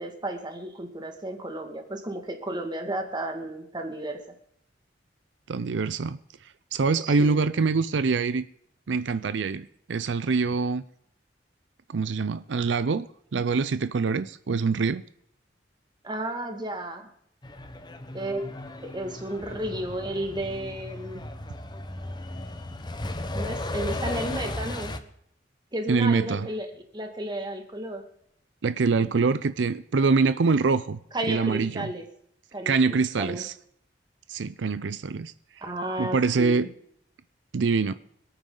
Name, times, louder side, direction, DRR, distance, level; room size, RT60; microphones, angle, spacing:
voice 1, 0.0-4.2 7.0-7.6 16.0-17.1 18.1-18.5 18.8-21.2 23.3-24.9 25.7-28.0 31.1-32.0 32.5-33.4 35.6-36.7, right 1 dB, 25° right, 4 dB, 2.0 m, -33 dB
voice 2, 5.5-6.2 6.7-8.5 8.9-10.8 11.9-13.1 13.3-15.0 25.9-26.5 28.6-31.0 31.3-31.9 32.7-33.5 34.3-35.3 36.0-36.7 37.5-37.9, right 4 dB, 85° right, 14 dB, 0.5 m, -24 dB
Truck, 17.4-25.0, left 1 dB, 25° left, 1.0 m, -35 dB
25.5 x 9.1 x 3.9 m, 0.70 s
head